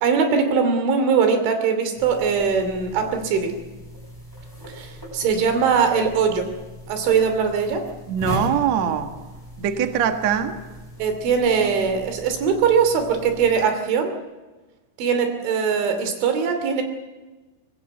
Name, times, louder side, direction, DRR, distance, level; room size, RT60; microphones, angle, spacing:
voice 1, 0.0-3.5 4.7-6.5 6.9-7.8 11.0-14.1 15.0-16.8, right 6 dB, 80° right, 7 dB, 5.2 m, -21 dB
sound 1, 2.0-13.6, left 1 dB, 5° right, 6.1 m, -38 dB
voice 2, 8.1-9.1 9.6-10.6, right 8 dB, 55° right, 7 dB, 2.0 m, -22 dB
24.0 x 20.5 x 8.0 m, 1.2 s
omnidirectional pair, 5.4 m